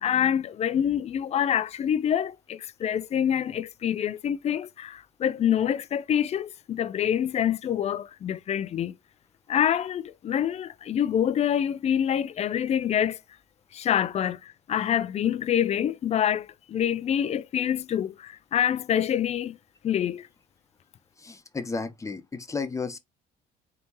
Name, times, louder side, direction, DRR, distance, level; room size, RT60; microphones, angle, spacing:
voice 1, 0.0-8.9 9.5-13.2 13.7-14.4 14.7-19.6 19.8-20.2, left 9 dB, 40° left, 0.4 m, -26 dB
voice 2, 21.2-23.0, left 4 dB, 20° left, 0.9 m, -33 dB
4.2 x 3.4 x 3.0 m
cardioid pair, 110°, 17 cm